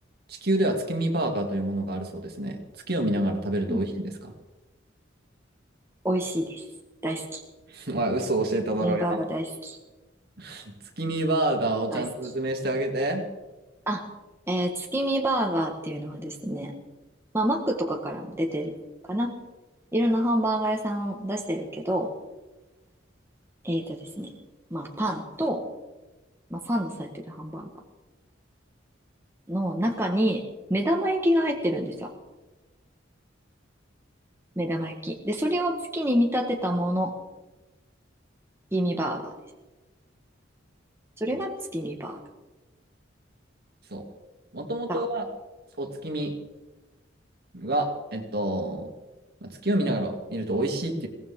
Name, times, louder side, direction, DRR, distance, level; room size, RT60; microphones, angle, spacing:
voice 1, 0.3-2.6 2.9-4.3 7.7-9.2 10.4-13.3 41.3-41.4 43.9-44.1 44.5-45.3 45.8-46.3 47.5-48.9 49.4-51.1, right 1 dB, 55° right, 2 dB, 2.7 m, -28 dB
voice 2, 6.0-6.6 7.0-7.4 8.8-9.8 11.9-12.0 13.9-14.1 14.5-16.7 17.3-18.7 19.1-19.3 19.9-22.1 23.6-24.3 24.7-25.6 26.5-27.7 29.5-30.4 30.7-32.1 34.6-37.1 38.7-39.3 41.2-42.2 44.9-45.0, equal, 15° right, 1 dB, 1.4 m, -27 dB
22.0 x 18.0 x 3.7 m, 1.1 s
head